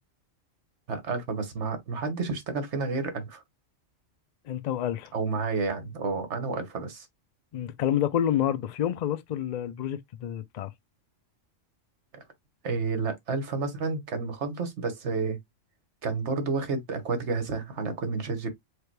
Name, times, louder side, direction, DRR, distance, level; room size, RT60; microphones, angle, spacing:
voice 1, 0.9-3.4 5.1-7.1 12.1-12.2 12.6-15.4 16.0-18.5, right 4 dB, 60° right, 1.4 m, -30 dB
voice 2, 4.4-5.1 7.5-10.7, left 10 dB, 75° left, 0.4 m, -28 dB
5.0 x 2.2 x 4.6 m
omnidirectional pair, 1.3 m